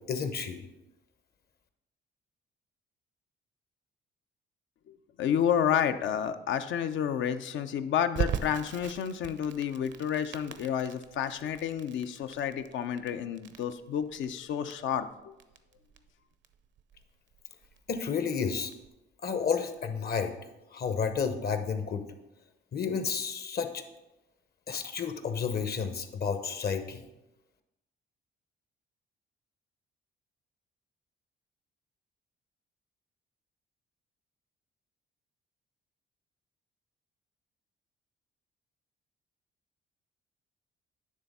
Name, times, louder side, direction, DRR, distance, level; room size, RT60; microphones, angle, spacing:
voice 1, 0.1-0.7 17.9-18.7 19.2-20.3 20.7-22.1 22.7-23.8 24.7-27.0, left 6 dB, 50° left, 8 dB, 0.9 m, -31 dB
voice 2, 4.9-15.3, left 9 dB, 75° left, 10 dB, 0.6 m, -30 dB
Crackle, 8.1-18.9, right 8 dB, 65° right, 0.6 m, -40 dB
9.7 x 3.5 x 5.4 m, 0.96 s
cardioid pair, 90°, 20 cm